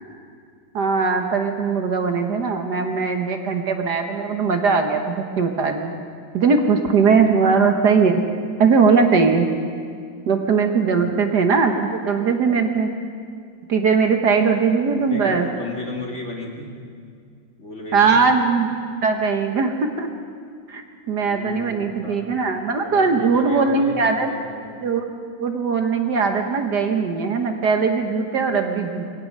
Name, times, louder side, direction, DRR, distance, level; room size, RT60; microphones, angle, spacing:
voice 1, 0.7-5.9 6.3-8.2 8.6-9.5 10.3-12.9 13.7-15.5 17.9-18.7 19.0-20.1 20.7-24.3 24.8-25.1 25.4-29.1, right 5 dB, 60° right, 5 dB, 1.8 m, -20 dB
voice 2, 10.7-11.0 14.8-16.7 17.6-18.2 21.2-22.3 22.7-24.6, left 2 dB, 35° left, -1 dB, 3.0 m, -34 dB
24.0 x 17.0 x 6.7 m, 2.2 s
omnidirectional pair, 2.1 m